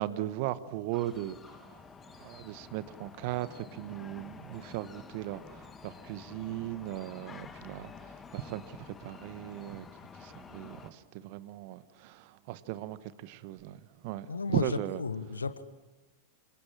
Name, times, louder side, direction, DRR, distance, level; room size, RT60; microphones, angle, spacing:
voice 1, 0.0-1.8 2.2-9.9 10.2-15.0, right 14 dB, 45° right, 1.3 m, -37 dB
sound 1, 0.9-10.9, left 5 dB, 20° left, 1.9 m, -50 dB
voice 2, 14.3-15.6, left 4 dB, 75° left, 1.4 m, -34 dB
28.5 x 26.5 x 7.5 m
figure-of-eight pair, 90°, 0 cm